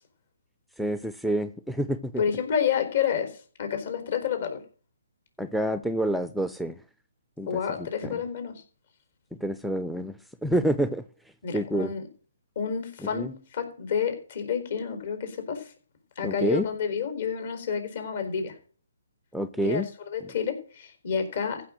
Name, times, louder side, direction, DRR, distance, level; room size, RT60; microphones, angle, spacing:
voice 1, 0.8-2.1 5.4-6.8 7.4-7.5 9.4-11.0 11.5-11.9 13.1-13.3 16.2-16.6 19.3-19.9, right 1 dB, ahead, 0.5 m, -27 dB
voice 2, 2.2-4.6 7.5-8.6 11.4-12.1 12.6-15.7 16.2-18.6 19.6-21.6, left 7 dB, 55° left, 4.3 m, -29 dB
15.0 x 6.0 x 7.7 m
hypercardioid pair, 150°, 0 cm